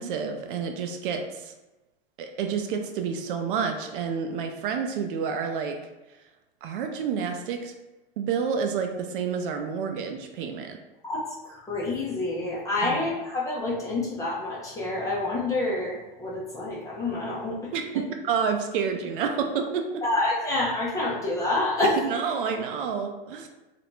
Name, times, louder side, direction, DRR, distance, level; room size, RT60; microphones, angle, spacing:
voice 1, 0.0-1.5 2.2-5.8 6.6-7.7 8.2-10.8 12.8-13.0 17.7-20.0 22.0-23.5, right 6 dB, 65° right, 5 dB, 0.5 m, -29 dB
voice 2, 11.0-17.6 20.0-22.0, left 2 dB, 10° left, -6 dB, 0.3 m, -28 dB
2.5 x 2.1 x 2.9 m, 1.0 s
hypercardioid pair, 130°, 30 cm